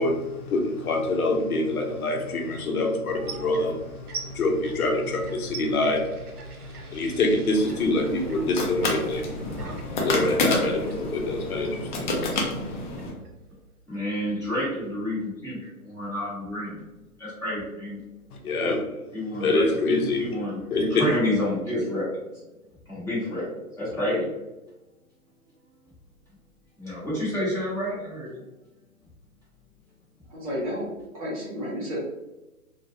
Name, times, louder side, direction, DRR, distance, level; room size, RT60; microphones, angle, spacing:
voice 1, 0.0-12.8 18.4-19.0 19.3-20.4 20.7-21.0, left 2 dB, 75° left, 2 dB, 0.7 m, -26 dB
sound 1, 3.1-14.0, right 3 dB, 85° right, 0.7 m, -43 dB
sound 2, 7.6-13.1, left 2 dB, 35° left, 0.5 m, -29 dB
voice 2, 13.9-16.8 17.2-18.0 19.1-19.6 20.2-20.5 21.0-22.2 22.9-24.3 26.8-28.5, left 1 dB, 5° left, -11 dB, 1.1 m, -29 dB
voice 3, 30.2-32.0, equal, 25° right, -7 dB, 0.6 m, -32 dB
2.4 x 2.2 x 2.7 m, 1.0 s
hypercardioid pair, 135°, 44 cm